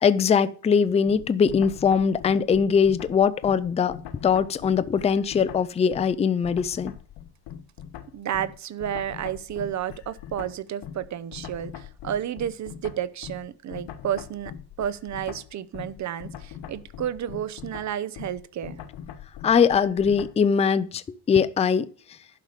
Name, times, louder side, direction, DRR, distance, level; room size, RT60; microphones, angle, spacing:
voice 1, 0.0-4.0 4.2-6.9 19.4-21.0 21.3-21.9, left 6 dB, 15° left, 0.3 m, -21 dB
sound 1, 1.0-6.2 6.4-20.4, left 9 dB, 65° left, 1.1 m, -41 dB
voice 2, 8.1-14.5 14.8-18.8, right 10 dB, 40° right, 0.7 m, -31 dB
11.5 x 5.1 x 6.7 m
cardioid pair, 160°, 44 cm